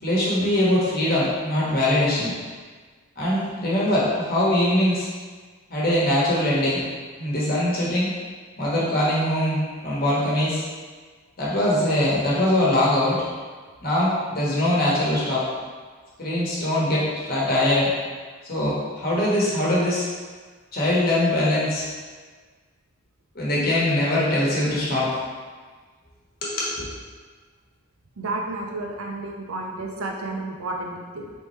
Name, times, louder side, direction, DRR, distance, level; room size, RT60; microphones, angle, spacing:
voice 1, 0.0-2.3 3.2-5.1 5.7-6.8 7.2-8.1 8.6-10.6 11.4-13.2 13.8-15.5 16.2-17.9 18.4-20.0 20.7-21.9 23.3-25.2 26.4-26.7, left 1 dB, 40° left, -7 dB, 1.2 m, -22 dB
voice 2, 28.2-31.3, right 2 dB, 75° right, 1 dB, 0.6 m, -31 dB
4.1 x 3.6 x 3.2 m, 1.5 s
head